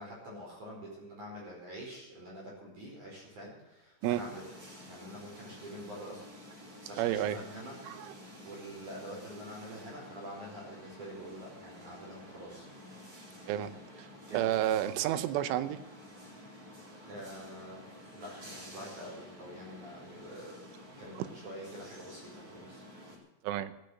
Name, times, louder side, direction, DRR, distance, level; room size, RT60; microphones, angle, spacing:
voice 1, 0.0-4.5 4.9-6.3 6.5-7.7 8.4-12.7 14.3-14.5 17.0-17.8 18.1-20.6 21.0-22.8, equal, 40° right, -4 dB, 5.9 m, -46 dB
sound 1, 4.0-23.2, equal, 20° right, 3.4 m, -51 dB
voice 2, 7.0-7.4 7.9-8.1 13.5-13.7 14.0-14.1 14.3-15.8 23.4-23.7, right 12 dB, 80° right, 12 dB, 3.3 m, -30 dB
15.0 x 8.6 x 7.8 m, 1.0 s
omnidirectional pair, 5.6 m